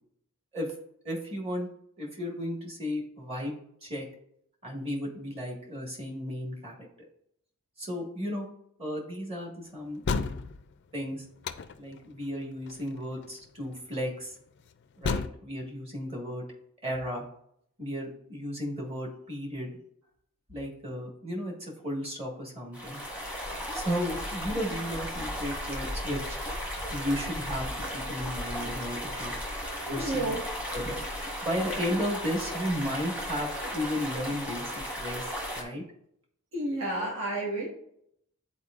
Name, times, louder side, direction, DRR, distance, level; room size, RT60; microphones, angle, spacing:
voice 1, 1.0-1.7 2.0-4.1 4.6-6.8 7.8-8.5 8.8-10.4 10.9-11.2 11.8-14.3 15.0-16.4 16.8-17.3 17.8-19.7 20.5-23.0 23.7-26.4 26.9-29.3 29.9-30.3 30.7-31.0 31.4-35.8, equal, 25° right, -1 dB, 1.5 m, -34 dB
sound 1, 10.0-10.7 11.4-12.0 12.7-12.9 13.2-13.3 15.0-15.3, left 4 dB, 55° left, 0.4 m, -30 dB
sound 2, 22.7-35.6, equal, 5° right, 1.1 m, -35 dB
voice 2, 29.9-30.4 36.5-37.7, right 2 dB, 70° right, -4 dB, 1.5 m, -31 dB
10.0 x 4.3 x 2.4 m, 0.71 s
head